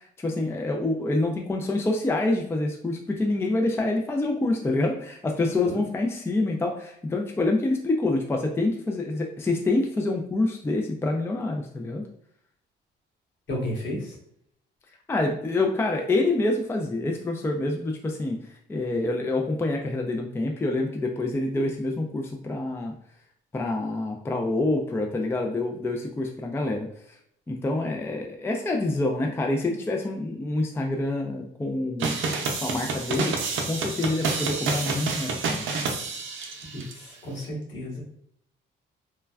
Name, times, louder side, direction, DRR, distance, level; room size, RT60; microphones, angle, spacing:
voice 1, 0.2-12.0 15.1-18.4 18.7-22.9 23.5-26.9 27.5-33.4 33.6-35.9, left 2 dB, 10° left, 2 dB, 0.4 m, -27 dB
voice 2, 13.5-14.1 37.2-38.0, left 1 dB, 70° left, -3 dB, 1.2 m, -31 dB
sound 1, 32.0-36.9, right 4 dB, 75° right, 0.5 m, -29 dB
3.2 x 2.1 x 2.3 m, 0.69 s
cardioid pair, 90°, 20 cm